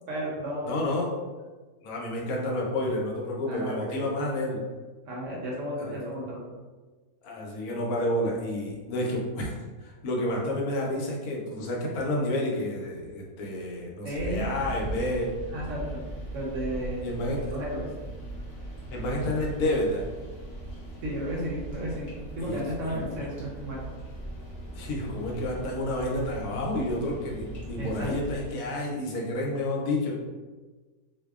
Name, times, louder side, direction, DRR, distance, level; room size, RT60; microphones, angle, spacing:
voice 1, 0.1-0.9 3.5-4.0 5.1-6.4 14.0-14.6 15.5-16.0 16.3-17.1 17.5-17.9 21.0-23.8 27.8-28.2, equal, 70° right, -4 dB, 0.9 m, -33 dB
voice 2, 0.6-1.1 1.8-4.6 5.8-6.0 7.2-15.3 17.0-17.5 18.9-20.0 22.4-22.6 22.9-23.3 24.7-30.2, left 1 dB, 85° left, -2 dB, 1.1 m, -30 dB
sound 1, 14.1-28.5, right 1 dB, 35° left, 0.7 m, -39 dB
2.6 x 2.0 x 2.3 m, 1.3 s
omnidirectional pair, 1.5 m